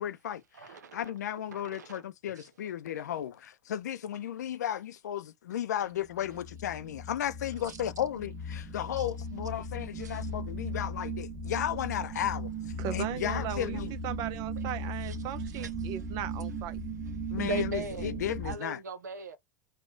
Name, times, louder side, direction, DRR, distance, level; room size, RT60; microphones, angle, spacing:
voice 1, 0.0-0.4 0.9-12.5 12.9-13.9 17.3-18.8, left 10 dB, 80° left, 0.5 m, -34 dB
voice 2, 0.5-1.1 1.5-2.0 2.4-2.5 7.7-7.8 9.0-9.1 10.0-10.2 15.0-15.2 15.5-15.7 17.4-19.4, right 3 dB, 85° right, 0.8 m, -39 dB
sound 1, 6.1-18.6, right 1 dB, 10° right, 1.5 m, -37 dB
voice 3, 12.8-16.8, right 10 dB, 50° right, 0.7 m, -37 dB
4.3 x 2.3 x 4.5 m
hypercardioid pair, 90°, 9 cm